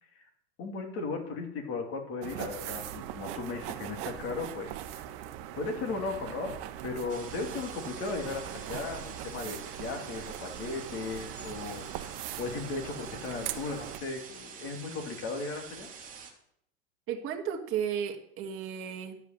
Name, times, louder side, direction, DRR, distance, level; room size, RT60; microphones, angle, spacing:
voice 1, 0.6-5.1 5.6-6.6 6.8-15.9, left 3 dB, 40° left, 2 dB, 2.8 m, -36 dB
sound 1, 2.2-14.0, right 12 dB, 55° right, 1.1 m, -41 dB
sound 2, 7.1-16.3, right 6 dB, 25° right, 2.3 m, -47 dB
voice 2, 17.1-19.2, right 8 dB, 40° right, 3 dB, 1.8 m, -34 dB
12.0 x 5.4 x 7.7 m, 0.71 s
supercardioid pair, 130°, 34 cm